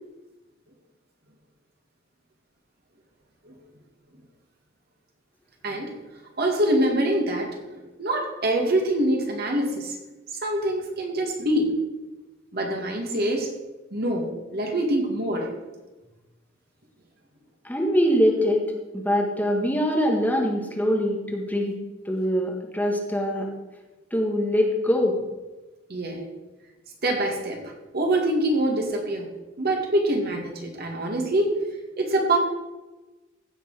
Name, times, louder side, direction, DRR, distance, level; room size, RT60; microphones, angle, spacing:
voice 1, 6.4-10.0 10.4-11.7 12.5-13.5 13.9-15.5 25.9-26.2 27.0-29.3 29.6-31.6 32.0-32.4, right 1 dB, 50° right, 1 dB, 2.1 m, -25 dB
voice 2, 17.6-18.6 18.9-21.7 22.0-23.5 24.1-25.1, equal, 10° left, 0 dB, 1.6 m, -23 dB
15.5 x 6.8 x 5.0 m, 1.1 s
head